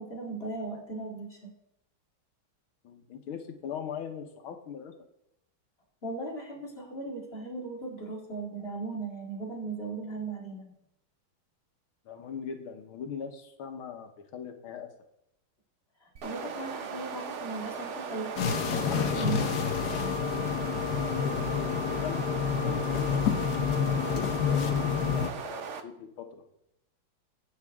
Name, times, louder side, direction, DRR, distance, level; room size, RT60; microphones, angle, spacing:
voice 1, 0.0-1.5 6.0-10.6 16.2-19.5, right 3 dB, 30° left, -1 dB, 2.2 m, -37 dB
voice 2, 2.8-4.9 12.1-14.9 21.1-26.4, left 7 dB, 80° left, 6 dB, 1.9 m, -41 dB
sound 1, 16.2-25.8, right 6 dB, 75° right, 0.6 m, -38 dB
sound 2, 18.4-25.3, left 7 dB, 60° left, 1.2 m, -28 dB
14.5 x 9.0 x 3.6 m, 0.81 s
omnidirectional pair, 2.3 m